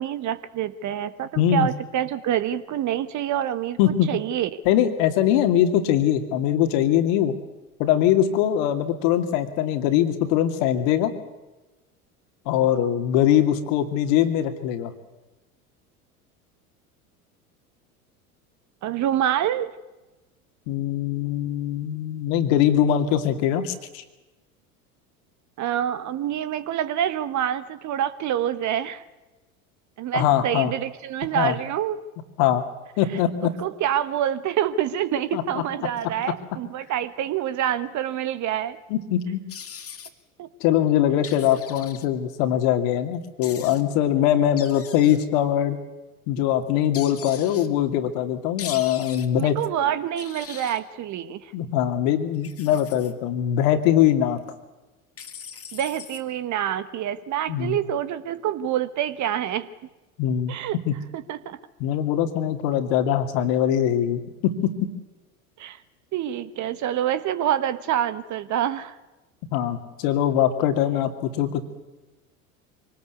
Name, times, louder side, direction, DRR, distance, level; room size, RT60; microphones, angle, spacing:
voice 1, 0.0-3.8 4.1-4.5 18.8-19.7 25.6-29.0 30.0-32.0 33.6-38.8 40.4-40.5 49.3-51.5 55.7-59.7 60.5-60.8 61.1-61.6 65.6-65.8 66.1-69.0, right 10 dB, 40° right, 13 dB, 1.3 m, -26 dB
voice 2, 1.4-1.7 3.8-4.1 4.6-7.4 7.8-11.1 12.5-14.9 20.7-24.0 30.1-30.7 31.3-31.6 32.4-32.6 33.0-33.5 35.3-35.6 38.9-39.4 40.6-45.8 46.3-49.6 51.5-54.4 57.5-57.8 60.2-60.5 60.9-61.0 61.8-64.7 69.5-71.6, left 10 dB, 55° left, 7 dB, 2.6 m, -22 dB
sound 1, 39.5-40.1 41.2-42.1 43.4-43.8 44.6-45.2 46.9-47.7 48.6-49.3 50.2-50.8 52.3-53.1 55.2-56.2, left 7 dB, 30° left, 2.3 m, -40 dB
24.5 x 18.5 x 8.3 m, 1.1 s
figure-of-eight pair, 75°, 44 cm